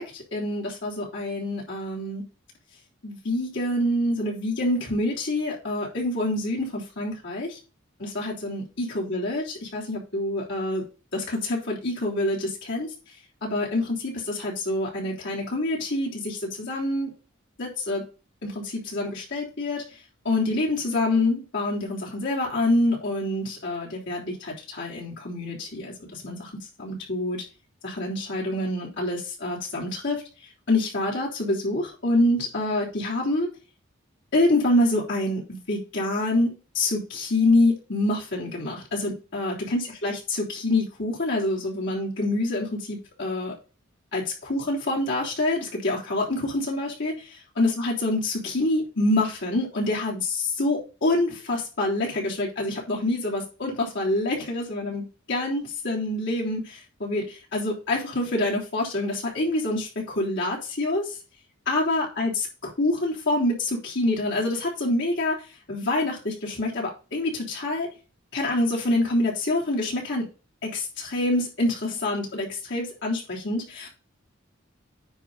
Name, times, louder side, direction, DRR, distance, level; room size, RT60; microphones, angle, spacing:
voice 1, 0.0-2.2 3.0-7.6 8.0-10.8 11.1-12.9 13.4-17.1 17.6-18.0 18.4-19.8 20.3-26.5 26.8-27.4 27.8-30.2 30.7-33.5 34.3-43.5 44.1-47.1 47.6-61.1 61.7-65.4 65.7-67.9 68.3-70.3 70.6-73.9, left 2 dB, 60° left, -4 dB, 3.5 m, -26 dB
9.7 x 4.1 x 4.0 m, 0.33 s
head